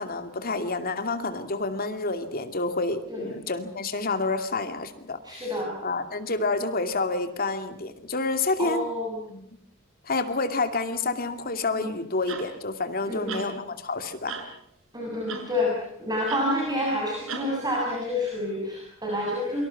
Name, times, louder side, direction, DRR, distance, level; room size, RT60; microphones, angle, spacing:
voice 1, 0.0-5.4 5.8-8.9 9.3-9.4 10.1-14.3, left 3 dB, 45° left, 8 dB, 2.6 m, -29 dB
voice 2, 5.2-5.7 8.6-9.2 11.7-11.9 13.1-13.4 14.9-19.6, left 1 dB, 20° right, -2 dB, 7.6 m, -28 dB
sound 1, 12.3-12.5 13.3-13.5 14.3-14.5 15.3-15.5 16.3-16.5 17.3-17.5 18.3-18.4, right 4 dB, 70° right, 5.1 m, -35 dB
28.5 x 25.0 x 5.9 m, 0.72 s
head